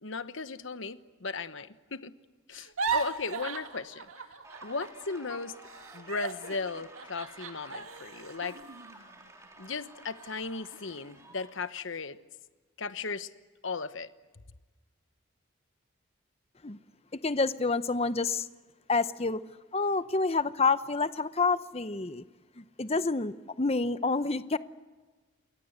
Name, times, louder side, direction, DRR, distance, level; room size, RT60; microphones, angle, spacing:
voice 1, 0.0-2.2 2.5-4.1 4.6-5.6 5.9-8.6 9.6-12.2 12.8-13.3 13.6-14.1, left 4 dB, 65° left, 1.1 m, -36 dB
sound 1, 2.5-5.0 5.3-9.7 10.2-10.3 10.7-11.2, right 6 dB, 85° right, 2.1 m, -38 dB
sound 2, 4.4-11.7, right 2 dB, 15° right, 3.7 m, -52 dB
voice 2, 17.2-18.5 18.9-19.4 19.7-22.2 22.6-24.6, left 3 dB, 30° left, 0.8 m, -28 dB
28.5 x 22.5 x 8.1 m
head